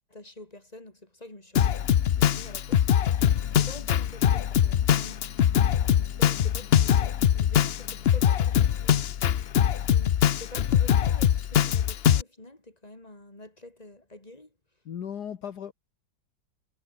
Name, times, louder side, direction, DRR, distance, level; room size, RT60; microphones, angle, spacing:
voice 1, 0.1-2.9 3.4-9.4 9.8-14.5, left 1 dB, 20° left, 4.6 m, -47 dB
Drum kit, 1.5-12.2, left 10 dB, 80° left, 0.5 m, -23 dB
Singing, 1.8-10.7, left 7 dB, 45° left, 1.4 m, -48 dB
voice 2, 14.9-15.7, left 8 dB, 65° left, 1.8 m, -36 dB
omnidirectional pair, 2.0 m